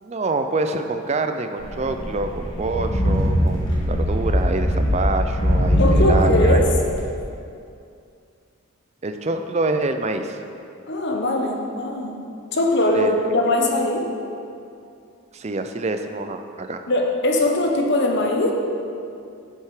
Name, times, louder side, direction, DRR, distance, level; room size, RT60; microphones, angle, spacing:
voice 1, 0.0-6.6 9.0-10.4 12.9-13.2 15.3-16.9, right 3 dB, 30° right, 7 dB, 0.4 m, -26 dB
sound 1, 1.6-7.0, equal, 75° left, 1.9 m, -21 dB
voice 2, 5.8-6.7 10.9-12.2 12.5-14.1 16.9-18.5, left 1 dB, 50° left, 1 dB, 1.0 m, -21 dB
8.2 x 7.4 x 4.9 m, 2.5 s
head